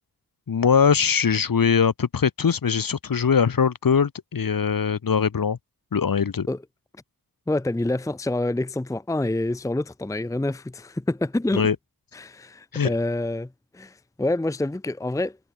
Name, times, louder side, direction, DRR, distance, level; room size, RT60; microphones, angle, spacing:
voice 1, 0.5-5.6 5.9-6.5 11.5-11.8 12.7-12.9, left 6 dB, 60° left, 2.1 m, -21 dB
voice 2, 7.5-11.7 12.1-15.4, left 2 dB, 10° left, 0.7 m, -27 dB
wide cardioid pair, 135°, 39 cm